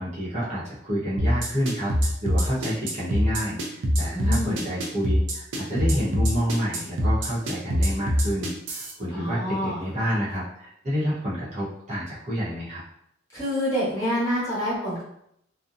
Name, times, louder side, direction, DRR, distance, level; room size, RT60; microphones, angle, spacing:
voice 1, 0.0-12.8, equal, 35° right, -9 dB, 0.9 m, -29 dB
sound 1, 1.2-8.9, equal, 70° right, 0.5 m, -23 dB
voice 2, 4.1-4.6 9.1-9.8 13.3-15.0, equal, 15° left, -9 dB, 1.1 m, -27 dB
2.6 x 2.1 x 2.5 m, 0.73 s
head